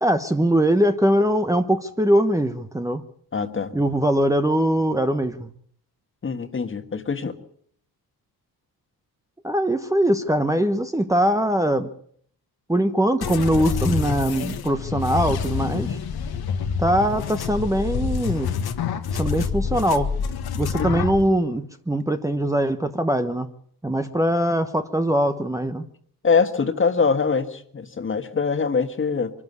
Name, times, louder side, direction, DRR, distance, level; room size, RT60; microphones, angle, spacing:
voice 1, 0.0-3.0 3.7-5.5 9.4-11.9 12.7-16.0 16.8-18.5 19.1-20.1 20.6-23.5 23.8-25.8, right 1 dB, 10° right, 7 dB, 1.0 m, -22 dB
voice 2, 3.3-3.7 6.2-7.4 20.8-21.0 26.2-29.3, left 5 dB, 35° left, 8 dB, 1.7 m, -23 dB
sound 1, 13.2-21.2, left 6 dB, 80° left, 1.7 m, -27 dB
24.0 x 12.5 x 9.6 m, 0.63 s
cardioid pair, 125°, 37 cm